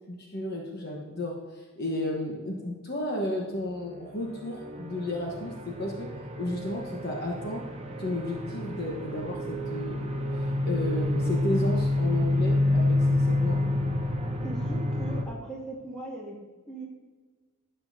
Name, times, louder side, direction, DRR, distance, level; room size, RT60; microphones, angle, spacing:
voice 1, 0.1-6.1 6.4-7.6 8.0-10.2 10.6-13.6, left 1 dB, 45° left, -1 dB, 1.1 m, -33 dB
sound 1, 4.4-15.3, left 1 dB, 30° right, 0.7 m, -28 dB
voice 2, 14.4-16.4 16.7-16.9, right 2 dB, 5° left, -7 dB, 2.3 m, -39 dB
12.0 x 7.9 x 2.7 m, 1.4 s
head